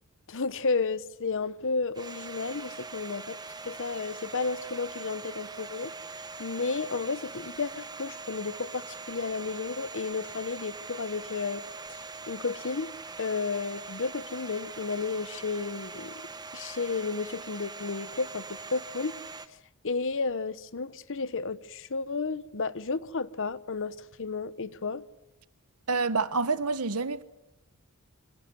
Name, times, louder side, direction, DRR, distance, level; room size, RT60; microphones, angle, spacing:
voice 1, 0.3-3.4 3.6-5.9 6.4-11.6 11.9-12.0 12.3-16.2 16.5-19.2 19.5-19.6 19.8-25.0, left 4 dB, 60° left, 1.0 m, -32 dB
Domestic sounds home sounds, 1.9-19.5, right 4 dB, 20° right, 1.0 m, -42 dB
voice 2, 25.9-27.2, right 4 dB, 80° right, 1.2 m, -27 dB
26.0 x 25.5 x 7.9 m
head